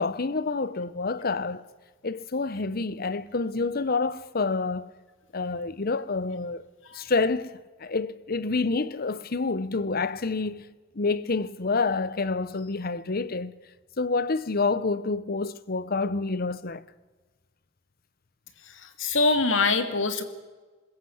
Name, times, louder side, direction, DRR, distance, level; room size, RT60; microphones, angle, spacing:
voice 1, 0.0-1.6 2.0-4.9 5.3-6.6 6.9-13.5 14.0-16.8, left 3 dB, 50° left, 0.8 m, -28 dB
voice 2, 18.7-20.2, left 3 dB, 80° left, 2.2 m, -24 dB
21.5 x 21.0 x 8.0 m
head